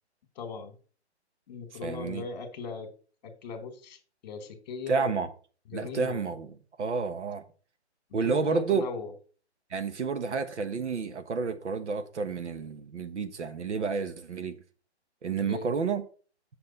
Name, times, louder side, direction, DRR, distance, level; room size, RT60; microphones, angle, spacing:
voice 1, 0.4-0.8 1.5-2.9 3.2-5.1 5.7-6.3 8.2-9.1 15.4-15.7, left 5 dB, 40° left, 1.8 m, -39 dB
voice 2, 1.8-2.2 4.9-5.3 5.7-6.5 6.8-7.4 8.1-8.9 9.7-14.6 15.2-16.0, right 5 dB, 85° right, 1.3 m, -30 dB
7.9 x 6.4 x 4.1 m
hypercardioid pair, 160°, 34 cm